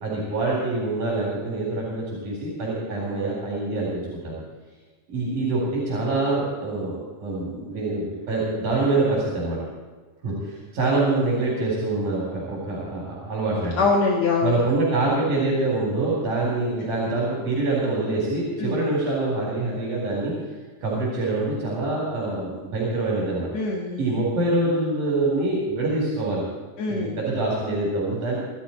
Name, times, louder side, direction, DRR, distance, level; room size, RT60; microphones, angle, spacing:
voice 1, 0.0-4.3 5.1-9.6 10.2-13.8 14.4-20.3 20.8-23.5 24.0-26.5 26.9-28.4, right 2 dB, 85° right, -4 dB, 5.2 m, -25 dB
voice 2, 13.8-14.6 18.6-18.8 23.5-24.1 26.8-27.2, left 4 dB, 65° left, -1 dB, 2.7 m, -23 dB
24.0 x 12.0 x 4.4 m, 1.4 s
omnidirectional pair, 3.5 m